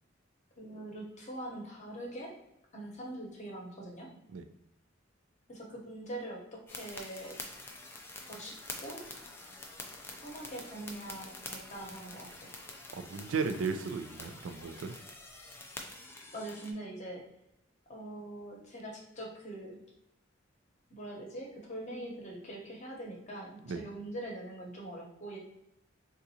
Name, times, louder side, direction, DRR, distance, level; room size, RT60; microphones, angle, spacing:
voice 1, 0.6-2.3 2.7-4.1 5.5-7.4 8.3-9.0 10.2-12.6 16.3-17.2 17.9-19.8 20.9-25.4, right 1 dB, 35° left, -1 dB, 0.8 m, -43 dB
sound 1, 6.7-16.7, left 2 dB, 10° left, 0.3 m, -47 dB
voice 2, 12.9-15.0 23.7-23.8, right 5 dB, 85° right, 8 dB, 0.3 m, -35 dB
3.8 x 2.4 x 2.7 m, 0.83 s
head